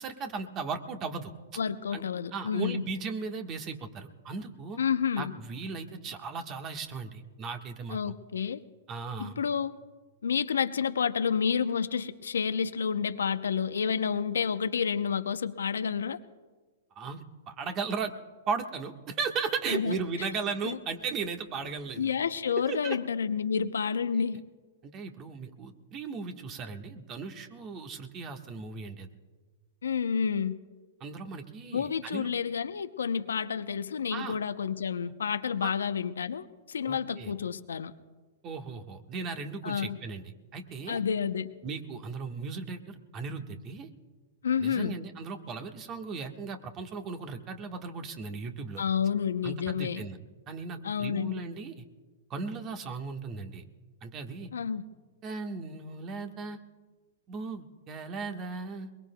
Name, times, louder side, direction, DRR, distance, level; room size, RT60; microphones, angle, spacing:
voice 1, 0.0-1.3 1.9-2.0 2.3-4.8 5.2-8.1 8.9-9.3 16.9-18.1 18.5-22.2 22.6-23.0 24.1-24.2 24.8-29.1 31.0-32.3 34.1-34.4 35.6-35.7 36.9-37.3 38.4-41.0 41.6-43.9 44.6-48.8 49.4-50.2 50.5-51.8 52.3-53.6 54.0-54.5 55.2-56.6 57.3-58.9, right 5 dB, 30° right, 5 dB, 1.4 m, -36 dB
voice 2, 1.6-2.8 4.8-5.3 7.9-8.6 9.2-9.8 10.2-16.2 19.7-20.3 20.6-20.8 22.0-24.4 29.8-30.6 31.7-37.9 39.6-40.0 40.9-41.5 44.4-45.0 48.8-50.0 50.8-51.4 54.5-54.8, left 7 dB, 80° left, 11 dB, 0.7 m, -30 dB
22.5 x 22.0 x 2.3 m, 1.4 s
hypercardioid pair, 120°, 0 cm